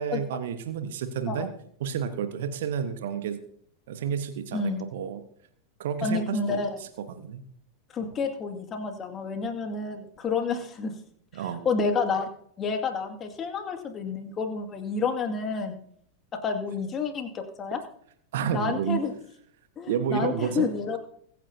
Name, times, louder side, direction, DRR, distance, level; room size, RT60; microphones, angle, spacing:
voice 1, 0.0-1.5 1.8-3.4 3.9-5.2 5.8-6.6 7.1-7.4 11.3-11.7 18.3-19.0 19.9-20.7, right 8 dB, 55° right, 9 dB, 1.2 m, -30 dB
voice 2, 4.5-4.8 6.0-6.7 7.9-10.9 11.6-12.3 12.6-15.8 16.4-17.8 18.5-19.1 19.8-21.0, left 4 dB, 25° left, 5 dB, 2.1 m, -29 dB
23.5 x 9.3 x 2.8 m, 0.64 s
figure-of-eight pair, 90°, 0 cm